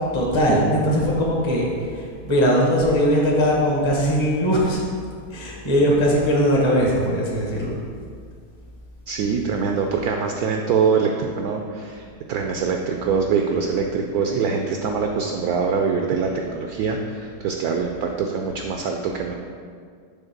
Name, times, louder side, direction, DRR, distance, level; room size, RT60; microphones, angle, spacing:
voice 1, 0.1-1.7 2.2-4.8 5.3-7.8, equal, 20° left, -3 dB, 0.8 m, -20 dB
voice 2, 9.1-19.4, right 5 dB, 70° right, 3 dB, 0.9 m, -24 dB
7.2 x 3.5 x 5.8 m, 2.1 s
omnidirectional pair, 1.9 m